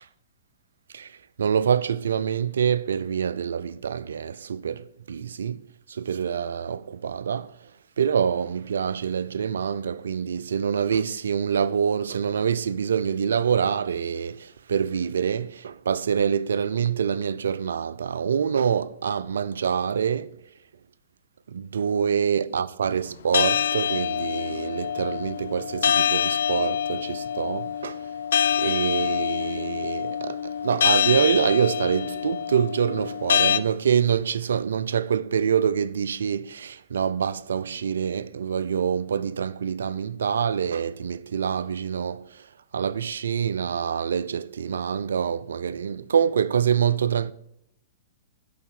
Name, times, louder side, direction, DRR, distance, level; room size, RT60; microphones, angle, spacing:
voice 1, 0.9-5.6 5.9-7.6 8.0-20.4 21.5-28.1 28.6-42.5 42.7-47.3, right 7 dB, 80° right, 0.4 m, -26 dB
sound 1, 23.3-33.6, left 8 dB, 75° left, 0.4 m, -25 dB
10.5 x 4.1 x 5.7 m
hypercardioid pair, 115°, 0 cm